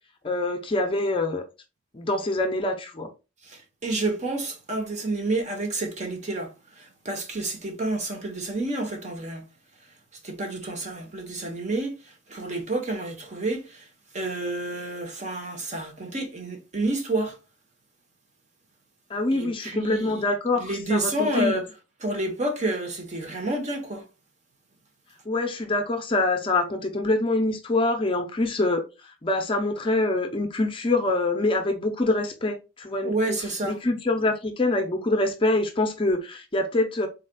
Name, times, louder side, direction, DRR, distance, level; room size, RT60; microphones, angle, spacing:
voice 1, 0.2-1.4 1.9-3.1 19.1-21.5 25.3-28.8 29.2-33.4 33.6-37.1, left 2 dB, 25° left, 0.5 m, -25 dB
voice 2, 3.4-9.4 10.2-12.0 12.3-13.9 14.1-17.4 19.3-20.2 20.6-21.7 22.0-24.0 33.0-33.8, right 2 dB, 35° right, 0.9 m, -29 dB
4.0 x 3.9 x 2.2 m
head